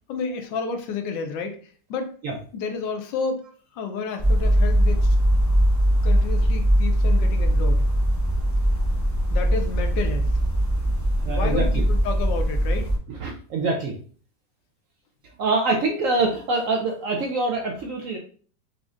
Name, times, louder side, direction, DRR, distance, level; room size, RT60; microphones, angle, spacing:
voice 1, 0.1-1.6 1.9-2.1 2.5-3.4 3.7-5.2 6.0-7.9 9.3-10.3 11.3-12.9, left 5 dB, 80° left, 5 dB, 1.3 m, -30 dB
sound 1, 4.2-13.0, equal, 20° left, 0.5 m, -20 dB
voice 2, 11.2-11.8 13.1-13.9 15.4-18.2, right 3 dB, 75° right, 1 dB, 0.7 m, -25 dB
4.9 x 2.5 x 2.4 m, 0.43 s
omnidirectional pair, 2.0 m